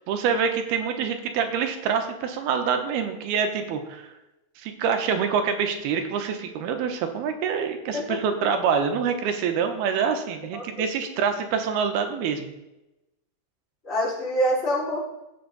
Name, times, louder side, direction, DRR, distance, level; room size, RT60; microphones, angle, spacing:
voice 1, 0.1-4.1 4.6-12.5, right 6 dB, 85° right, 6 dB, 3.0 m, -26 dB
voice 2, 10.5-10.9 13.8-15.0, equal, 15° left, -9 dB, 4.8 m, -25 dB
15.0 x 7.5 x 4.1 m, 0.95 s
omnidirectional pair, 4.4 m